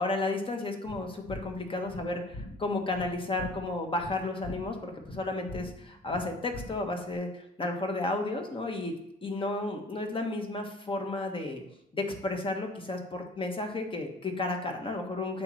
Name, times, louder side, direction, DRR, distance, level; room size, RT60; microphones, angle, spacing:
voice 1, 0.0-8.9 9.2-11.6 11.9-15.4, left 2 dB, 25° left, 3 dB, 1.3 m, -33 dB
sound 1, 0.9-7.1, left 1 dB, 80° left, 1.4 m, -43 dB
8.5 x 3.1 x 6.1 m, 0.77 s
cardioid pair, 90°, 20 cm